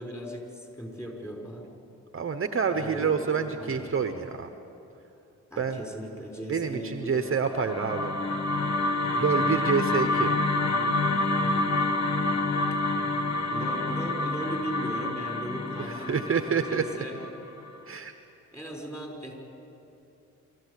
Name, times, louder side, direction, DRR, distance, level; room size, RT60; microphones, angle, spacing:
voice 1, 0.0-1.7 2.7-3.9 5.5-7.3 9.2-9.5 13.5-17.2 18.5-19.3, equal, 10° left, 0 dB, 5.6 m, -38 dB
voice 2, 2.1-4.5 5.6-5.8 6.5-8.1 9.2-10.3 16.1-16.8 17.9-18.1, right 6 dB, 40° right, 8 dB, 1.0 m, -27 dB
sound 1, 7.4-17.7, left 2 dB, 55° left, 1.8 m, -28 dB
25.5 x 14.5 x 8.4 m, 2.8 s
cardioid pair, 75°, 32 cm